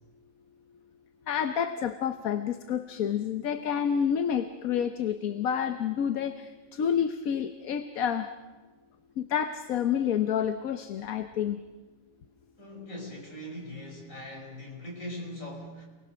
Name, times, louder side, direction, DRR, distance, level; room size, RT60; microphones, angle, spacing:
voice 1, 1.3-8.3 9.2-11.6, left 8 dB, 85° left, 9 dB, 1.4 m, -29 dB
voice 2, 12.6-15.8, left 1 dB, 70° left, 0 dB, 5.6 m, -40 dB
28.5 x 20.0 x 6.3 m, 1.3 s
omnidirectional pair, 1.4 m